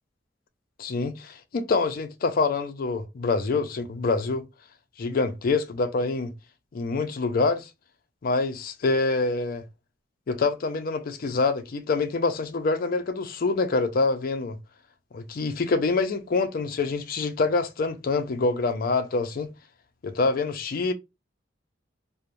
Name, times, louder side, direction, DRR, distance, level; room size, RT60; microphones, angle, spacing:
voice 1, 0.8-4.5 5.0-6.3 6.7-7.7 8.2-9.6 10.3-14.6 15.1-19.5 20.0-20.9, left 3 dB, 50° left, 0.4 m, -26 dB
3.1 x 2.1 x 2.5 m
head